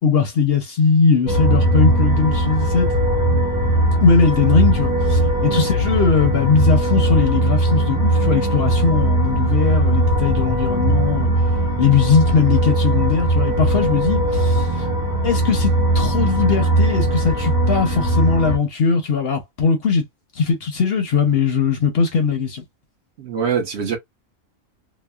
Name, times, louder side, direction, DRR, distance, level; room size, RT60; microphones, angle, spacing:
voice 1, 0.0-2.9 4.0-11.3 11.8-14.8 15.2-20.0 20.4-22.6, left 5 dB, 60° left, 0.8 m, -19 dB
sound 1, 1.3-18.6, right 1 dB, 35° right, 1.3 m, -19 dB
voice 2, 5.2-5.7 23.2-24.0, right 7 dB, 60° right, 0.9 m, -25 dB
2.9 x 2.1 x 2.2 m
omnidirectional pair, 1.4 m